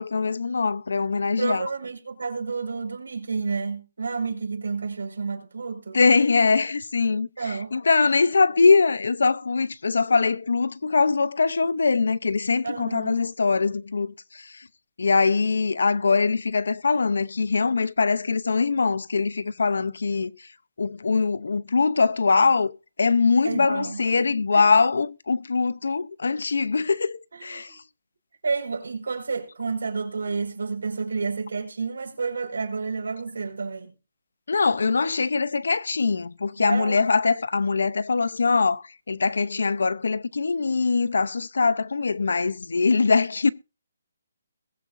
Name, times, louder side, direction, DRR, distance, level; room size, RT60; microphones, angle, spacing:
voice 1, 0.0-1.7 5.9-14.7 15.0-20.5 20.8-27.8 34.5-43.5, left 4 dB, 75° left, 0.8 m, -22 dB
voice 2, 1.4-6.0 7.4-7.8 12.6-13.2 23.4-24.0 24.5-24.6 27.3-27.8 28.4-33.9 36.6-37.0 42.3-42.5, right 4 dB, 80° right, 5.4 m, -30 dB
21.5 x 8.1 x 2.7 m
hypercardioid pair, 180°, 0 cm